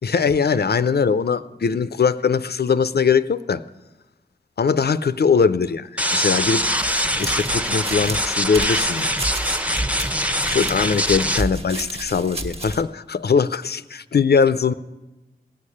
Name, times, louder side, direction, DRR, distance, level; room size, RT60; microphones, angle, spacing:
voice 1, 0.0-3.6 4.6-6.6 7.2-9.1 10.4-14.7, left 5 dB, 75° left, 14 dB, 0.5 m, -21 dB
sound 1, 6.0-11.4, equal, 10° right, 0.8 m, -23 dB
sound 2, 6.8-12.8, right 1 dB, 35° right, 1.3 m, -31 dB
17.0 x 6.7 x 9.9 m, 1.1 s
wide cardioid pair, 50°, 17 cm